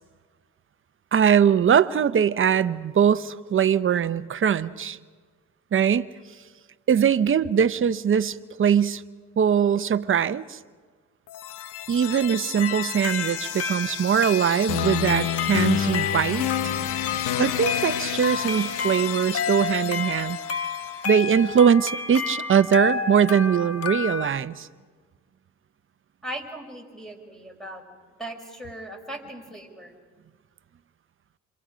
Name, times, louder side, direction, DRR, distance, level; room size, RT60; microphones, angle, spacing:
voice 1, 1.1-5.0 5.7-6.1 6.9-9.0 9.4-10.6 11.9-16.7 17.4-20.4 21.0-24.7, right 8 dB, 45° right, 14 dB, 0.8 m, -21 dB
sound 1, 11.3-21.2, left 10 dB, 90° left, 1.0 m, -30 dB
sound 2, 12.6-24.3, left 6 dB, 50° left, 1.6 m, -31 dB
voice 2, 26.2-27.8 28.2-29.9, right 1 dB, ahead, 2 dB, 5.3 m, -38 dB
28.0 x 27.5 x 5.1 m, 1.5 s
cardioid pair, 90°, 30 cm